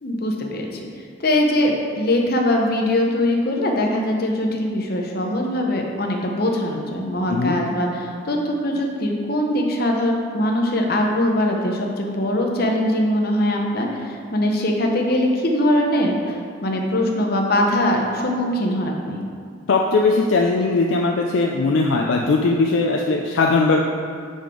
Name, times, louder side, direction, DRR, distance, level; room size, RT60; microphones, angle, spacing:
voice 1, 0.0-0.8 1.2-19.2, left 1 dB, 50° left, 1 dB, 0.8 m, -22 dB
voice 2, 19.7-23.8, left 3 dB, 70° left, 0 dB, 0.4 m, -19 dB
6.7 x 5.1 x 3.8 m, 2.2 s
head